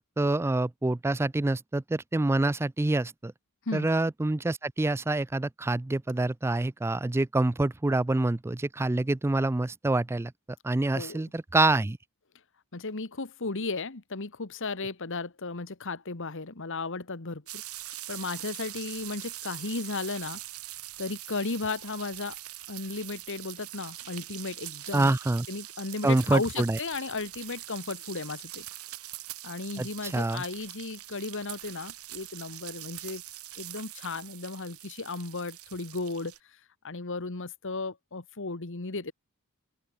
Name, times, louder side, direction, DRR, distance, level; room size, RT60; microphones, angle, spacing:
voice 1, 0.2-3.3 3.7-10.3 10.6-12.0 24.9-25.5 26.0-26.8 29.8-30.4, right 2 dB, 10° right, 0.3 m, -26 dB
voice 2, 10.9-11.3 12.7-17.6 18.1-20.4 21.0-22.4 22.7-25.1 25.5-28.6 29.4-33.2 33.6-36.3 36.8-39.1, left 3 dB, 60° left, 1.5 m, -35 dB
sound 1, 17.5-36.4, right 15 dB, 75° right, 6.5 m, -43 dB
open air
head